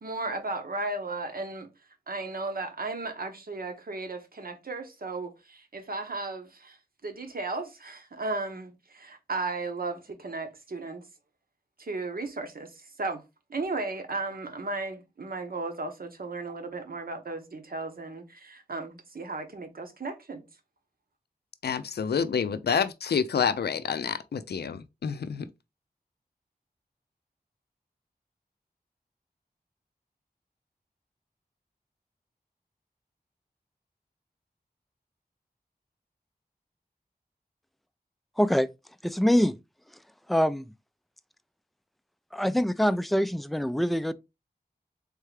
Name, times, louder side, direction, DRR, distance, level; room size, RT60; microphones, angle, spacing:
voice 1, 0.0-1.7 2.1-6.8 7.0-11.0 11.8-13.2 13.5-20.4, right 3 dB, 65° right, 0.9 m, -35 dB
voice 2, 21.6-25.5, left 6 dB, 85° left, 0.4 m, -28 dB
voice 3, 38.4-38.7 39.0-39.6 40.3-40.7 42.3-44.1, equal, ahead, 0.3 m, -24 dB
3.6 x 3.3 x 3.2 m
wide cardioid pair, 55°, 16 cm